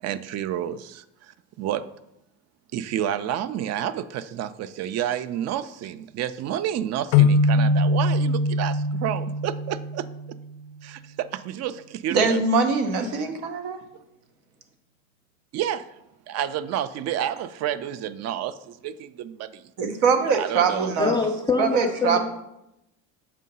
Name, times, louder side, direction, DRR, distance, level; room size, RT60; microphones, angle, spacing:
voice 1, 0.0-1.8 2.7-10.1 10.8-12.4 13.1-13.3 15.5-15.9 16.3-19.7 20.3-20.9, right 10 dB, 40° right, 15 dB, 0.4 m, -30 dB
sound 1, 7.1-10.6, left 2 dB, 60° left, 0.5 m, -22 dB
voice 2, 12.1-13.8 19.8-21.1 21.6-22.2, right 5 dB, 75° right, 6 dB, 1.0 m, -22 dB
voice 3, 21.0-22.2, left 4 dB, 10° left, 2 dB, 0.5 m, -24 dB
7.3 x 2.8 x 5.3 m, 0.86 s
supercardioid pair, 100°, 40 cm